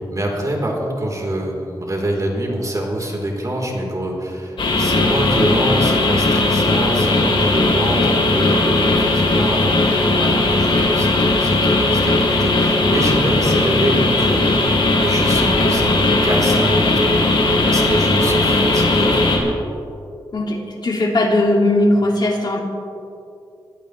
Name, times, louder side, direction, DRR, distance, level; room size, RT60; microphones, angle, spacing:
voice 1, 0.1-17.1 17.6-19.4, right 1 dB, 40° right, -1 dB, 4.0 m, -25 dB
sound 1, 4.6-19.4, left 2 dB, 70° left, 4.0 m, -17 dB
voice 2, 20.3-22.6, left 1 dB, 50° left, 0 dB, 2.6 m, -18 dB
25.5 x 16.0 x 3.4 m, 2.7 s
cardioid pair, 70°, 9 cm